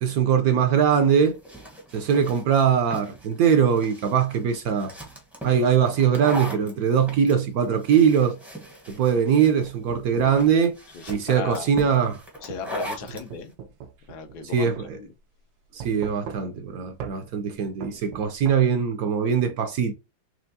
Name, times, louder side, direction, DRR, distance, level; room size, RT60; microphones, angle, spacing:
voice 1, 0.0-1.4 1.9-4.9 5.4-8.4 8.9-10.8 11.1-12.2 14.5-15.0 15.7-19.9, right 7 dB, 65° right, 0.9 m, -21 dB
sound 1, 0.9-13.3, right 1 dB, ahead, 0.6 m, -39 dB
sound 2, 9.0-10.5 11.4-11.6 12.5-14.5 14.8-14.9 15.8-16.7 17.0-17.2 17.8-18.6, right 7 dB, 85° right, 1.3 m, -40 dB
voice 2, 10.1-10.5 10.9-11.7 12.4-13.5 14.1-15.1, left 6 dB, 65° left, 1.3 m, -37 dB
4.5 x 3.1 x 2.7 m
omnidirectional pair, 2.0 m